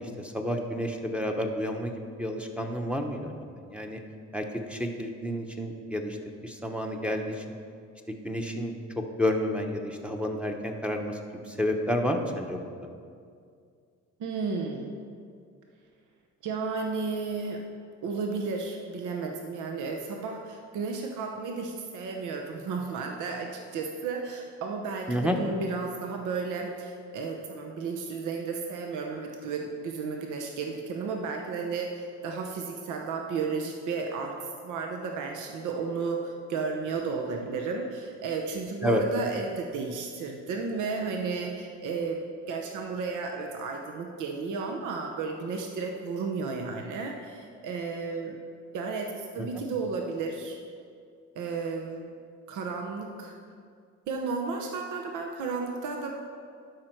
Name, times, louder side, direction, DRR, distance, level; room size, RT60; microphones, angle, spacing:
voice 1, 0.0-4.0 4.3-6.2 6.4-7.4 8.1-12.7 25.1-25.4 38.8-39.0 49.4-49.6, equal, 5° right, 2 dB, 0.8 m, -30 dB
voice 2, 14.2-14.9 16.4-17.6 18.0-42.2 42.5-48.3 48.7-50.6 51.4-52.1 52.5-53.3 54.1-56.1, right 4 dB, 80° right, 2 dB, 0.8 m, -33 dB
12.0 x 5.0 x 4.5 m, 2.2 s
cardioid pair, 90°, 30 cm